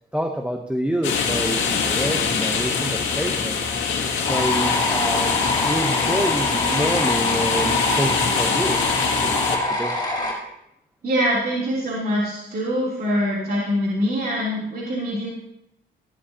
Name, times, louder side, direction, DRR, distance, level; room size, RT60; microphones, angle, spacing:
voice 1, 0.1-3.8 4.2-5.3 5.6-8.8 9.2-10.0, equal, 5° right, 3 dB, 0.8 m, -27 dB
sound 1, 1.0-9.6, left 5 dB, 75° left, 2.0 m, -24 dB
sound 2, 4.2-10.3, left 2 dB, 20° left, 4.7 m, -25 dB
voice 2, 11.0-15.3, equal, 50° right, -6 dB, 3.2 m, -24 dB
14.5 x 11.0 x 2.9 m, 0.82 s
cardioid pair, 90°, 20 cm